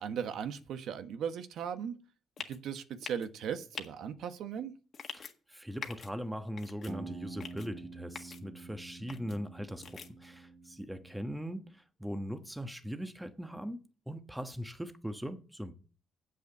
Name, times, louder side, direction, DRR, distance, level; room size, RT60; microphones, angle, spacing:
voice 1, 0.0-1.9 2.5-4.7, right 8 dB, 75° right, 1.1 m, -37 dB
sound 1, 2.4-2.6 3.0-3.3 3.7-3.9 4.9-5.3 5.8-6.1 6.6-6.9 7.4-7.7 8.1-8.4 9.1-9.4 9.8-10.1, left 6 dB, 50° left, 1.7 m, -43 dB
voice 2, 5.1-13.8 14.1-15.7, equal, 5° right, 1.2 m, -40 dB
sound 2, 6.9-11.5, right 3 dB, 60° right, 2.0 m, -47 dB
8.0 x 6.4 x 8.0 m
cardioid pair, 90°, 0 cm